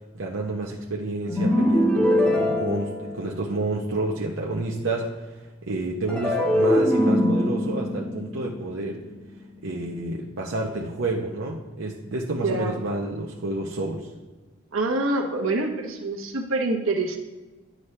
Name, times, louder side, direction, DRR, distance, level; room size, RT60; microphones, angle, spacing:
voice 1, 0.1-5.1 5.6-9.0 9.6-14.1, right 2 dB, 70° right, -2 dB, 0.8 m, -29 dB
sound 1, 1.3-3.7 6.1-9.4, left 1 dB, 5° left, 1.2 m, -23 dB
voice 2, 12.4-12.7 14.7-17.2, right 2 dB, 90° right, 2 dB, 1.1 m, -26 dB
9.6 x 6.3 x 3.3 m, 1.2 s
head